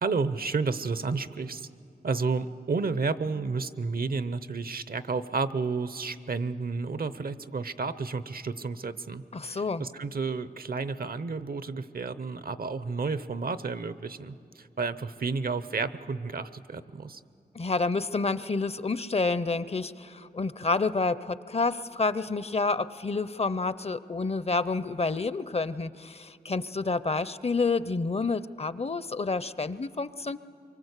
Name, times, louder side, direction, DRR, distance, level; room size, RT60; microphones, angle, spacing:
voice 1, 0.0-1.7 2.0-17.2, right 4 dB, 70° right, 14 dB, 0.7 m, -31 dB
voice 2, 9.3-9.8 17.5-30.4, left 3 dB, 40° left, 15 dB, 0.6 m, -29 dB
25.0 x 23.5 x 8.2 m, 2.5 s
wide cardioid pair, 80°, 16 cm